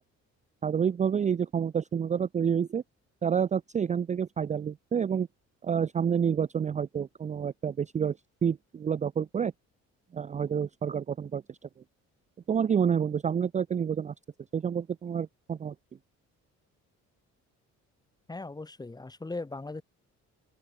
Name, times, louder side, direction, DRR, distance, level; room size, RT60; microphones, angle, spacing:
voice 1, 0.6-2.8 3.2-5.3 5.6-8.2 8.4-9.5 10.1-11.6 12.5-14.1 14.5-15.7, right 7 dB, 25° right, 0.4 m, -28 dB
voice 2, 18.3-19.8, left 3 dB, 15° left, 1.0 m, -38 dB
open air
cardioid pair, 100°, 30 cm